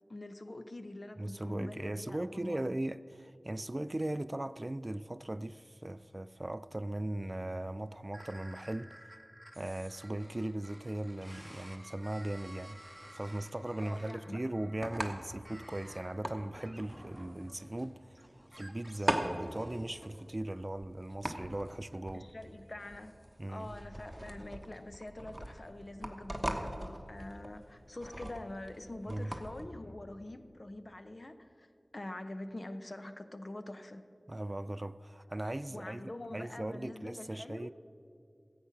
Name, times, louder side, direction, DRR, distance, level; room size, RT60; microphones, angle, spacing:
voice 1, 0.1-2.7 13.8-14.4 22.1-23.2 23.5-34.0 35.7-37.7, left 1 dB, 50° left, 0.7 m, -45 dB
voice 2, 1.2-8.9 9.6-12.8 13.1-18.2 18.5-22.3 23.4-23.7 29.1-29.3 34.3-37.7, right 1 dB, 35° right, 0.3 m, -38 dB
sound 1, 8.1-20.1, equal, 5° left, 1.5 m, -54 dB
sound 2, 12.8-29.7, right 1 dB, 15° right, 1.1 m, -41 dB
14.5 x 8.4 x 5.9 m
wide cardioid pair, 60°, 0 cm